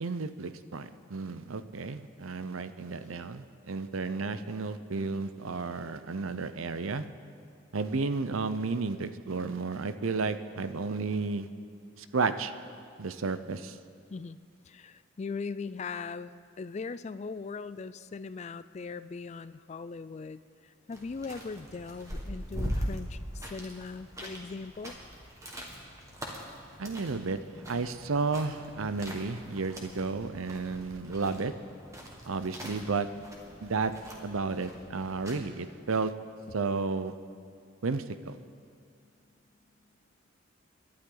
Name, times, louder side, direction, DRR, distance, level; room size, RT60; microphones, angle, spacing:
voice 1, 0.0-7.1 7.7-11.5 12.0-12.5 13.0-13.8 26.8-27.4 27.7-31.5 32.3-33.1 33.6-33.9 34.2-36.1 36.5-37.1 37.8-38.3, right 4 dB, 80° right, 11 dB, 0.7 m, -32 dB
voice 2, 14.6-25.0, left 4 dB, 30° left, 15 dB, 0.3 m, -40 dB
sound 1, 20.9-35.3, equal, 15° right, 1.7 m, -42 dB
28.0 x 12.0 x 3.9 m, 2.2 s
head